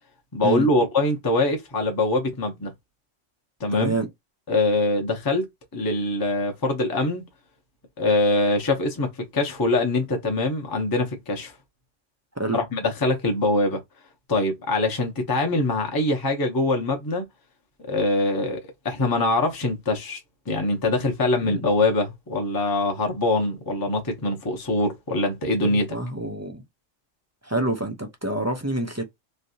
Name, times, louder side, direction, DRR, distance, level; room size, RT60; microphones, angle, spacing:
voice 1, 0.3-2.7 3.6-4.0 4.5-5.4 5.7-7.2 8.0-11.5 12.5-13.8 14.3-17.2 17.9-20.2 20.5-26.0, left 2 dB, 20° left, 0.6 m, -23 dB
voice 2, 3.7-4.1 12.4-12.6 21.4-21.6 25.6-26.6 27.4-29.0, right 2 dB, 25° right, 0.3 m, -27 dB
3.3 x 2.6 x 2.7 m
omnidirectional pair, 1.3 m